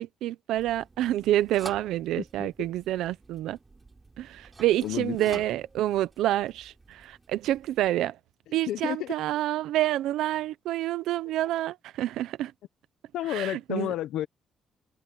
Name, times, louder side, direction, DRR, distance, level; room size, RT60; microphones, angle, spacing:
voice 1, 0.0-3.6 4.2-8.2 8.5-12.5 13.3-13.9, right 14 dB, 85° right, 0.9 m, -28 dB
sound 1, 0.6-7.9, right 3 dB, 25° right, 5.4 m, -49 dB
voice 2, 2.2-2.7 4.8-5.4 8.7-9.1 13.1-14.3, left 13 dB, 85° left, 1.2 m, -32 dB
cardioid pair, 90°, 0 cm